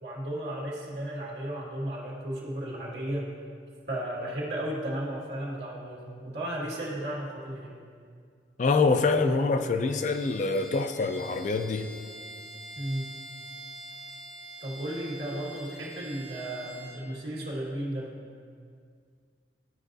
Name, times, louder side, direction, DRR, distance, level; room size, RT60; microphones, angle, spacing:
voice 1, 0.0-3.3 3.9-7.8 12.7-13.1 14.6-18.2, right 1 dB, 75° right, -4 dB, 1.7 m, -34 dB
voice 2, 8.6-11.9, left 3 dB, 45° left, 8 dB, 0.4 m, -25 dB
Bowed string instrument, 9.9-17.0, right 1 dB, 20° left, 1.0 m, -45 dB
12.0 x 4.8 x 2.6 m, 2.1 s
head